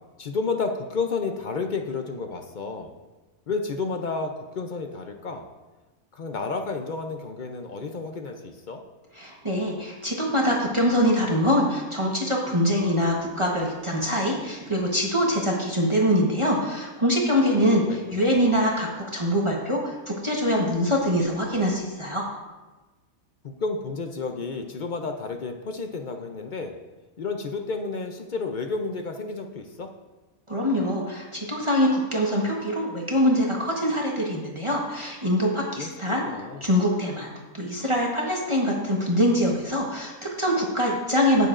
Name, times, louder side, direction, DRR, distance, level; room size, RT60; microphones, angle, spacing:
voice 1, 0.2-2.9 3.5-5.5 6.1-8.8 17.6-18.5 23.4-26.8 27.2-29.9 35.8-35.9 36.2-36.7, left 4 dB, 55° left, 4 dB, 0.5 m, -31 dB
voice 2, 9.2-22.2 30.5-36.2 36.6-37.3 37.5-41.5, equal, 20° right, -2 dB, 1.1 m, -24 dB
17.0 x 6.9 x 2.5 m, 1.2 s
omnidirectional pair, 1.5 m